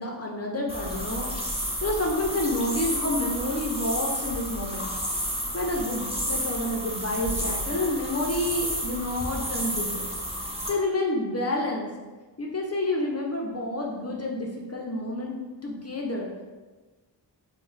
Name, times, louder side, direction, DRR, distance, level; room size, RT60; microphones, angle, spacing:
voice 1, 0.0-4.9 5.5-10.1 10.7-11.9 12.4-16.3, left 1 dB, 35° left, -1 dB, 0.5 m, -29 dB
sound 1, 0.7-10.7, equal, 15° right, 0.6 m, -31 dB
3.0 x 2.1 x 3.8 m, 1.3 s
wide cardioid pair, 45°, 44 cm